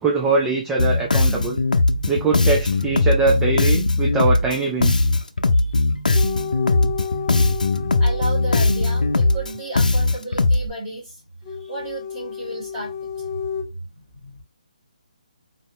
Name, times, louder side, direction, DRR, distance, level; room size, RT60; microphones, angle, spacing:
voice 1, 0.0-1.6 2.1-5.1, right 3 dB, 10° right, 0.5 m, -22 dB
Bass guitar, 0.8-10.7, left 2 dB, 85° left, 0.6 m, -19 dB
sound 1, 6.1-10.1 11.5-13.6, left 7 dB, 30° left, 0.7 m, -32 dB
voice 2, 8.0-11.2 11.5-13.0 13.2-13.3 13.8-14.4, right 2 dB, 25° right, 2.0 m, -33 dB
4.2 x 2.7 x 3.1 m
figure-of-eight pair, 150°, 4 cm